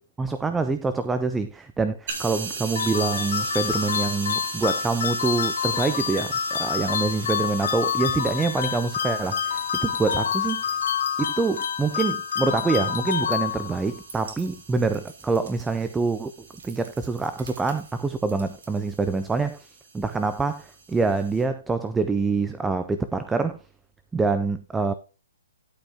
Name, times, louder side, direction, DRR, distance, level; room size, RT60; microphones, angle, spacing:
voice 1, 0.2-10.6 11.2-23.6 24.1-24.9, right 4 dB, 5° right, 0.4 m, -26 dB
sound 1, 2.1-21.4, right 4 dB, 45° right, 3.1 m, -40 dB
sound 2, 2.7-14.0, left 8 dB, 55° left, 1.2 m, -28 dB
sound 3, 13.8-19.5, right 5 dB, 70° right, 2.5 m, -49 dB
11.5 x 5.3 x 3.5 m
hypercardioid pair, 165°, 0 cm